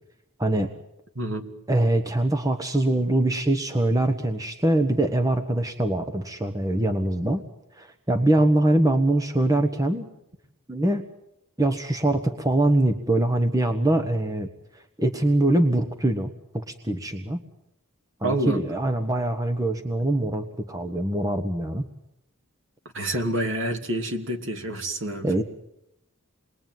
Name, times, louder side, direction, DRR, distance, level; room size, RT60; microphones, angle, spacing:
voice 1, 1.1-1.5 18.2-18.8 22.9-25.3, right 1 dB, 55° right, 4 dB, 2.9 m, -28 dB
voice 2, 1.7-7.4 7.8-10.1 10.7-11.0 11.6-14.5 15.0-16.3 16.5-17.4 18.2-21.9 25.2-25.4, right 1 dB, 15° right, 6 dB, 1.3 m, -23 dB
28.0 x 22.0 x 9.3 m, 0.85 s
head